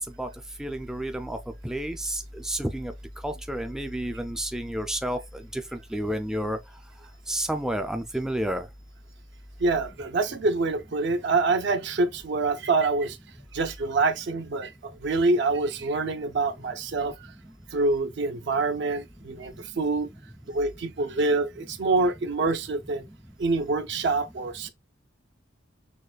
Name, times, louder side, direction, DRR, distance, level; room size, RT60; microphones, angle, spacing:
voice 1, 0.6-1.4 1.6-2.2 2.5-2.9 3.2-5.2 5.5-5.6 5.9-6.6 7.3-8.6, right 1 dB, 5° right, 0.3 m, -30 dB
voice 2, 9.6-13.2 13.5-14.7 15.0-17.1 17.7-20.1 20.5-23.1 23.4-24.7, right 3 dB, 60° right, 0.5 m, -26 dB
6.4 x 2.2 x 2.3 m
head